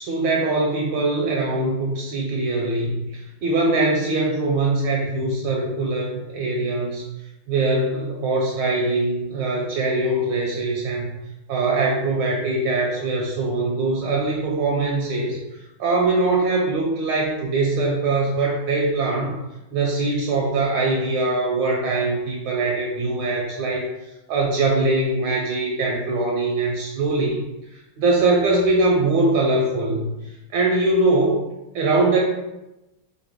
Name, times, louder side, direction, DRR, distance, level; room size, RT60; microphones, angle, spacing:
voice 1, 0.0-7.1 7.5-11.1 11.5-15.4 15.8-19.4 19.7-27.4 27.7-30.1 30.5-31.5 31.7-32.2, right 2 dB, 75° right, -1 dB, 1.2 m, -22 dB
4.5 x 2.1 x 3.5 m, 0.97 s
omnidirectional pair, 2.3 m